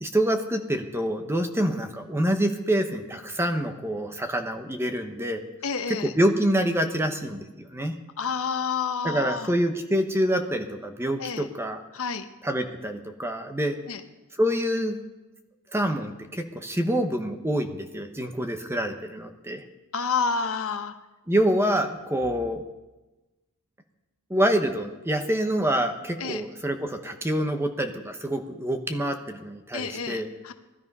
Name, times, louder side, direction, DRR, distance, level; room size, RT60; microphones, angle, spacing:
voice 1, 0.0-5.4 5.9-7.9 9.0-11.8 12.4-13.7 14.3-15.0 15.7-19.6 21.3-22.6 24.3-30.3, equal, 10° right, 6 dB, 1.1 m, -26 dB
voice 2, 5.6-6.1 8.2-9.5 11.2-11.5 11.9-12.3 13.9-14.0 19.9-21.0 26.2-26.4 29.7-30.5, left 5 dB, 65° left, 8 dB, 1.0 m, -29 dB
18.0 x 12.5 x 5.5 m, 1.1 s
head